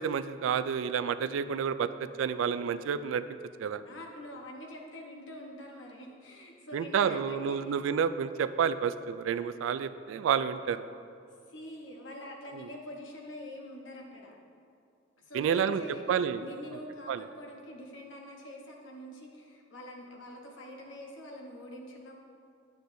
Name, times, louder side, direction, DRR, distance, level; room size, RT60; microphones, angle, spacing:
voice 1, 0.0-3.2 3.6-3.8 6.7-10.8 12.5-12.7 15.3-15.8 16.1-16.4 17.1-17.2, right 7 dB, 85° right, 13 dB, 0.3 m, -29 dB
voice 2, 3.8-7.8 11.5-14.3 15.2-22.1, equal, 75° left, 0 dB, 1.0 m, -45 dB
8.4 x 7.8 x 2.6 m, 2.4 s
head